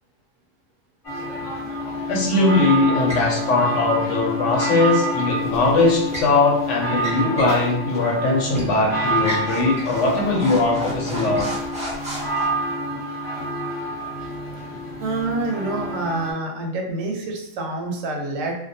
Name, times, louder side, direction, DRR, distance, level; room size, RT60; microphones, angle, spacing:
Venice bells, 1.0-16.3, right 1 dB, 30° left, 0.8 m, -28 dB
voice 1, 2.1-11.5, left 3 dB, 75° left, 0 dB, 0.9 m, -20 dB
sound 1, 3.1-3.3 5.5-6.3 6.9-7.6 7.9-8.1 8.5-8.7 9.2-12.4, equal, 10° right, 0.4 m, -32 dB
voice 2, 15.0-18.6, right 2 dB, 80° right, 1 dB, 0.9 m, -27 dB
2.4 x 2.1 x 2.6 m, 0.78 s
omnidirectional pair, 1.3 m